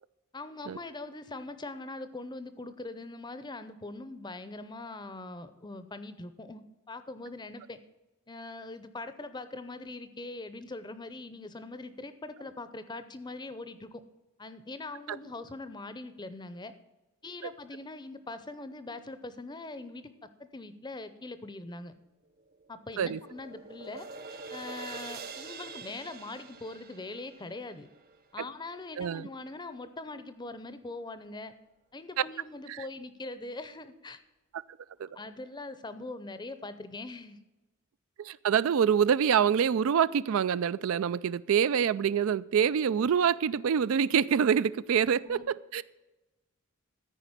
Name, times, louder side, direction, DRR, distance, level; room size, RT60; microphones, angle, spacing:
voice 1, 0.3-7.8 8.3-14.0 14.4-16.7 17.2-20.1 20.4-21.9 22.7-27.9 28.3-31.5 31.9-34.2 35.1-37.4 45.3-45.4, left 2 dB, 20° left, 12 dB, 0.7 m, -42 dB
sound 1, 22.4-28.7, right 4 dB, 40° right, 0.9 m, -45 dB
voice 2, 29.0-29.3 32.7-32.8 35.0-35.1 38.2-45.8, right 7 dB, 65° right, 17 dB, 0.3 m, -26 dB
14.0 x 5.0 x 8.9 m, 1.1 s
head